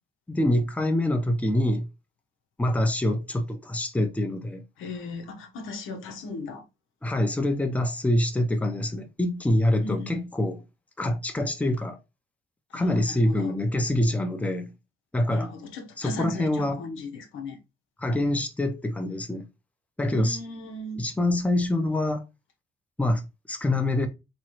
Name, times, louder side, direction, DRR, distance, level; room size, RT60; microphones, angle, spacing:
voice 1, 0.3-1.9 2.6-4.6 7.0-10.6 11.0-12.0 12.7-14.7 15.1-15.5 16.0-16.8 18.0-19.5 20.0-20.4 21.0-22.2 23.0-23.2 23.5-24.1, left 1 dB, 5° left, 0.7 m, -25 dB
voice 2, 4.8-6.6 9.8-10.2 12.7-13.5 15.3-17.6 20.1-21.0, left 2 dB, 85° left, 0.9 m, -37 dB
3.6 x 3.1 x 2.9 m
cardioid pair, 90°, 20 cm